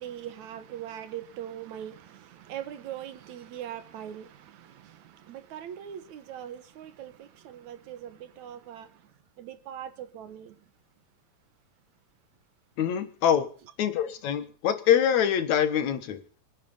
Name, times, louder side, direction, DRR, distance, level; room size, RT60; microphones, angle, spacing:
voice 1, 0.0-8.9 9.4-10.5, right 10 dB, 75° right, 2.6 m, -41 dB
voice 2, 12.8-13.5 13.8-16.2, left 9 dB, 75° left, 2.7 m, -24 dB
25.5 x 9.5 x 5.5 m
omnidirectional pair, 3.3 m